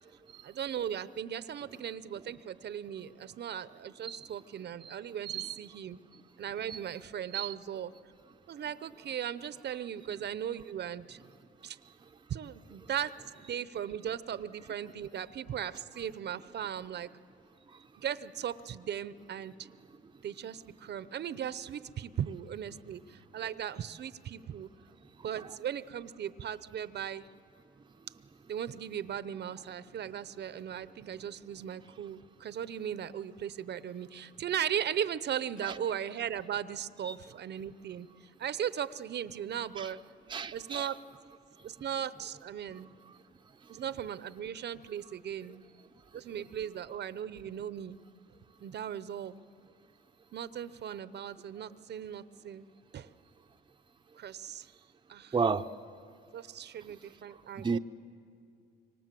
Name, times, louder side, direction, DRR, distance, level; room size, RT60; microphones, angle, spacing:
voice 1, 0.4-6.0 6.4-7.9 8.5-11.2 11.6-11.8 12.3-13.2 13.4-17.1 18.0-19.7 20.2-24.7 25.2-27.3 28.5-40.0 40.5-41.0 41.6-42.9 43.7-45.7 46.1-48.0 48.6-49.4 50.3-52.7 52.9-53.1 54.2-54.7 55.1-55.3 56.3-57.8, right 9 dB, 60° right, 15 dB, 0.8 m, -37 dB
voice 2, 5.2-5.6 6.7-6.8 7.3-7.5 25.4-25.5 35.6-35.8 37.0-37.2 39.8-39.9 40.3-40.9 55.3-55.7 57.6-57.8, right 5 dB, 25° right, 7 dB, 0.7 m, -33 dB
26.5 x 25.0 x 7.6 m, 2.4 s
cardioid pair, 90°, 20 cm